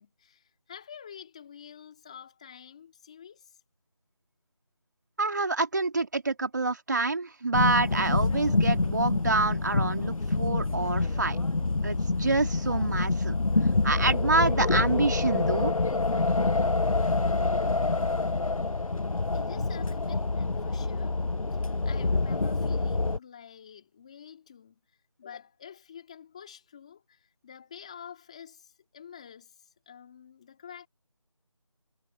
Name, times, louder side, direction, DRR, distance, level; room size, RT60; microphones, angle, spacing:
voice 1, 0.0-3.6 19.3-21.2 21.5-30.9, left 8 dB, 10° left, 2.9 m, -48 dB
voice 2, 5.2-11.4 11.8-13.4 13.8-15.7, right 3 dB, 35° right, 3.0 m, -27 dB
sound 1, 7.5-23.2, left 3 dB, 80° left, 1.1 m, -27 dB
figure-of-eight pair, 175°, 17 cm